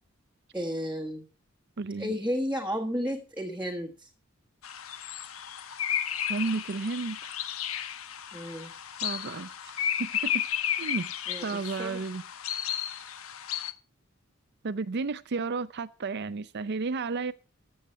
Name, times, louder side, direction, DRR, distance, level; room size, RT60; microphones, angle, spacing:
voice 1, 0.5-1.2 2.0-4.1 8.3-8.7 11.3-12.0, equal, 10° right, 1.5 m, -33 dB
voice 2, 1.8-2.1 6.3-7.3 9.0-9.5 10.0-10.4 10.8-11.1 11.4-12.2 14.6-17.3, right 4 dB, 55° right, 0.6 m, -32 dB
sound 1, 4.6-13.7, left 10 dB, 80° left, 1.1 m, -33 dB
15.0 x 8.0 x 5.6 m
head